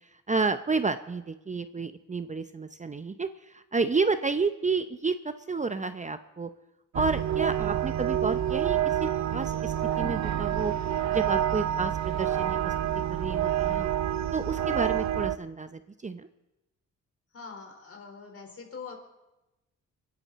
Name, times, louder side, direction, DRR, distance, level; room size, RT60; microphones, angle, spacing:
voice 1, 0.3-6.5 6.9-10.7 11.1-12.7 13.1-13.9 14.3-16.3, right 4 dB, 25° right, 10 dB, 0.7 m, -30 dB
sound 1, 6.9-15.4, right 11 dB, 60° right, 0.7 m, -28 dB
voice 2, 17.3-19.0, left 5 dB, 50° left, 2 dB, 4.4 m, -43 dB
25.0 x 11.0 x 4.1 m, 0.99 s
cardioid pair, 75°, 31 cm